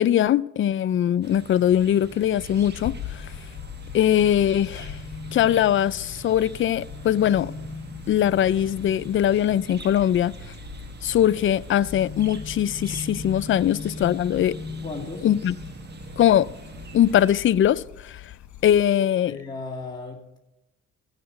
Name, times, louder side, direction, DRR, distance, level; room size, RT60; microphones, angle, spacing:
voice 1, 0.0-3.3 3.9-5.0 5.3-7.5 8.1-10.3 11.0-14.6 15.2-15.5 16.2-16.5 16.9-18.2 18.6-19.4, left 11 dB, 45° left, 0.4 m, -21 dB
sound 1, 1.2-17.4, equal, 35° right, 1.2 m, -40 dB
sound 2, 2.4-18.9, left 11 dB, 65° left, 1.5 m, -43 dB
voice 2, 14.8-15.3 19.3-20.4, left 3 dB, 15° left, 2.1 m, -35 dB
15.5 x 6.7 x 6.7 m
cardioid pair, 90°, 30 cm